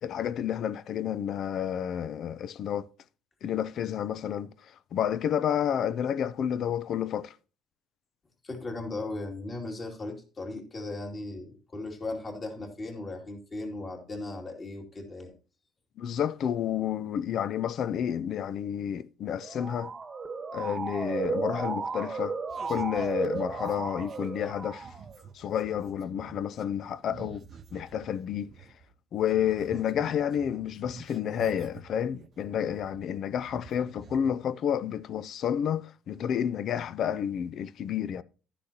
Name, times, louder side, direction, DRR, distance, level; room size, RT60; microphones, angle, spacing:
voice 1, 0.0-2.9 3.4-7.4 16.0-19.9 20.5-22.3 22.6-24.9 25.3-27.4 27.7-28.5 29.1-38.2, left 9 dB, 55° left, 0.5 m, -30 dB
voice 2, 8.4-15.3, left 2 dB, 30° left, 2.6 m, -37 dB
Motor vehicle (road) / Siren, 19.3-25.2, right 4 dB, 25° right, 1.2 m, -34 dB
sound 1, 22.5-28.9 29.2-33.1 33.4-34.3, right 7 dB, 45° right, 0.7 m, -49 dB
11.5 x 10.0 x 2.9 m
cardioid pair, 110°, 0 cm